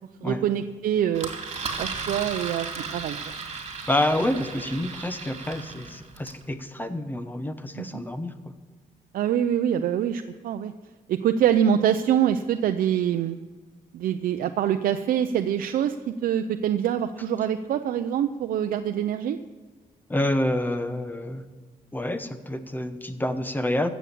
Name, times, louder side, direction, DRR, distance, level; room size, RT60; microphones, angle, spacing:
voice 1, 0.2-1.3 1.8-3.3 7.8-8.0 9.1-10.7 11.1-13.4 13.9-16.0 16.2-19.4, right 9 dB, 85° right, 7 dB, 0.5 m, -25 dB
Engine, 1.1-6.4, right 4 dB, 45° right, 2.3 m, -35 dB
voice 2, 3.9-8.5 20.1-21.4 21.9-23.9, left 1 dB, 15° left, 10 dB, 0.9 m, -28 dB
15.5 x 7.1 x 8.5 m, 1.4 s
cardioid pair, 110°, 14 cm